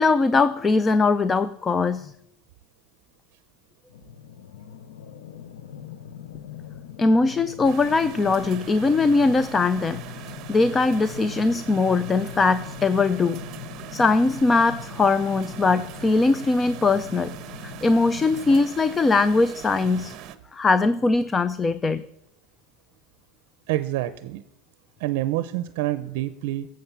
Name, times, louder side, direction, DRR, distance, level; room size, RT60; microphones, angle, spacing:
voice 1, 0.0-2.1 7.0-13.4 13.9-17.4 17.6-20.1 20.5-22.0, left 3 dB, 15° left, 15 dB, 0.4 m, -21 dB
sound 1, 3.9-18.6, left 9 dB, 90° left, 0.7 m, -41 dB
sound 2, 7.6-20.4, right 10 dB, 40° right, 1.0 m, -41 dB
voice 2, 23.7-24.4 25.0-26.7, right 15 dB, 65° right, 12 dB, 0.6 m, -27 dB
16.5 x 7.6 x 7.1 m, 0.82 s
supercardioid pair, 155°, 0 cm